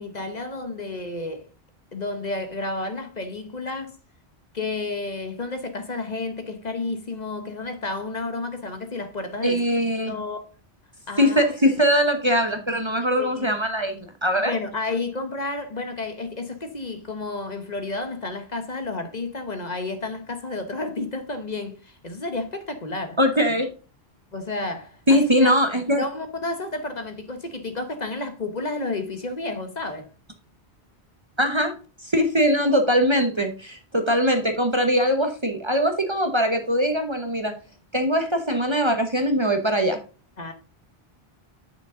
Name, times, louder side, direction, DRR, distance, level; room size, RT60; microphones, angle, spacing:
voice 1, 0.0-1.5 1.9-4.0 4.5-9.6 10.1-10.4 11.1-11.5 13.2-13.5 14.4-23.2 24.3-25.5 26.0-30.1 40.4-40.5, left 2 dB, 45° left, 1.1 m, -31 dB
voice 2, 9.4-10.2 11.2-14.5 23.2-23.7 25.1-26.0 31.4-31.7 32.0-37.5 37.9-40.0, equal, 30° right, 1.0 m, -21 dB
8.2 x 6.2 x 3.7 m
omnidirectional pair, 1.1 m